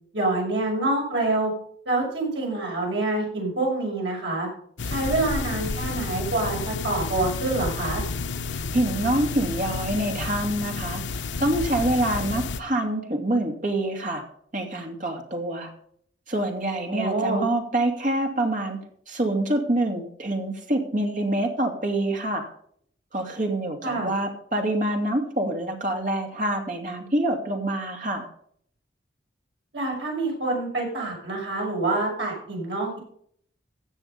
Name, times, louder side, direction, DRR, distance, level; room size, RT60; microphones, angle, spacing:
voice 1, 0.1-1.5 1.9-4.5 4.8-8.0 16.9-17.4 23.8-24.1 29.7-33.0, right 2 dB, 70° right, -1 dB, 6.1 m, -26 dB
sound 1, 4.8-12.6, left 4 dB, 75° left, 0.8 m, -31 dB
voice 2, 8.7-14.2 14.5-15.7 16.3-18.8 19.1-22.5 23.1-28.3, right 1 dB, 45° right, 2 dB, 2.8 m, -26 dB
16.0 x 6.5 x 5.5 m, 0.63 s
head